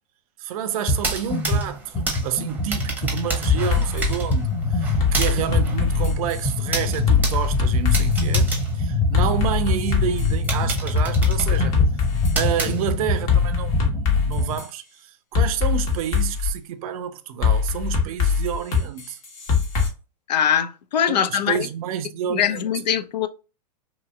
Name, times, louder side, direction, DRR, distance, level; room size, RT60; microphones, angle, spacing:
voice 1, 0.4-11.8 12.3-19.2 21.1-22.7, right 9 dB, 60° right, 0.5 m, -29 dB
sound 1, 0.9-1.0 1.3-14.6, left 2 dB, 20° left, 1.3 m, -25 dB
sound 2, 0.9-9.7 10.1-10.2 10.5-13.3, right 3 dB, 10° right, 0.8 m, -31 dB
sound 3, 3.5-4.1 5.0-6.4 7.1-8.3 9.1-10.5 11.0-12.4 13.3-14.7 15.3-16.5 17.4-19.9, left 6 dB, 55° left, 1.2 m, -22 dB
voice 2, 20.3-21.7 22.3-23.3, left 9 dB, 80° left, 0.5 m, -22 dB
2.9 x 2.7 x 2.2 m
hypercardioid pair, 105°, 21 cm